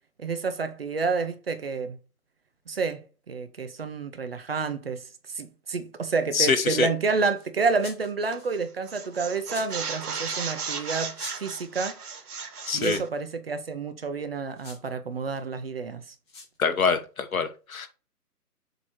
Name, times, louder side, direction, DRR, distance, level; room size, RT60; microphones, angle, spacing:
voice 1, 0.2-2.0 2.7-5.0 5.3-12.0 12.7-16.0, right 4 dB, 40° right, 0.7 m, -29 dB
voice 2, 6.3-6.9 12.7-13.0 16.6-17.9, left 5 dB, 60° left, 1.2 m, -25 dB
sound 1, 6.4-6.8 7.3-8.5 9.1-9.9 10.7-10.8 11.1-11.5 12.7-13.2 14.5-14.8 16.3-16.6, left 3 dB, 15° left, 1.1 m, -46 dB
sound 2, 8.3-8.6 8.9-13.1, right 5 dB, 70° right, 1.5 m, -35 dB
7.4 x 3.1 x 4.4 m
figure-of-eight pair, 150°, 47 cm